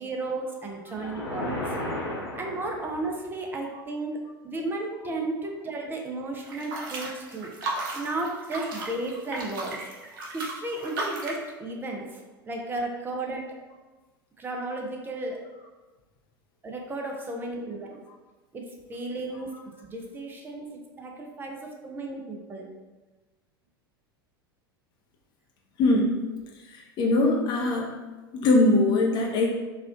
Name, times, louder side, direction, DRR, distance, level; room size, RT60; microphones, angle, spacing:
voice 1, 0.0-1.8 2.4-4.2 4.4-7.5 7.9-9.8 10.3-13.5 14.4-15.4 16.6-18.0 18.5-19.5 19.8-22.7, right 2 dB, 15° right, 1 dB, 0.6 m, -34 dB
sound 1, 0.9-3.3, left 1 dB, 80° left, 1.2 m, -34 dB
sound 2, 6.4-11.5, right 2 dB, 55° right, 0.8 m, -35 dB
voice 2, 25.8-26.2 26.7-27.9 28.3-29.5, left 2 dB, 35° left, 0 dB, 0.7 m, -22 dB
4.2 x 2.4 x 2.4 m, 1.2 s
figure-of-eight pair, 85°, 13 cm